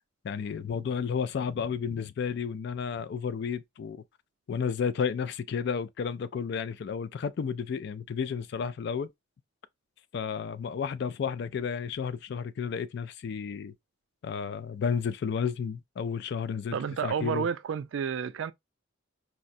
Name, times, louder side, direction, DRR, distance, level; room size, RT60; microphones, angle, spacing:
voice 1, 0.2-4.0 4.5-9.1 10.1-13.7 14.2-17.5, left 6 dB, 55° left, 0.3 m, -32 dB
voice 2, 16.7-18.5, right 7 dB, 70° right, 0.3 m, -30 dB
4.7 x 2.1 x 2.6 m
head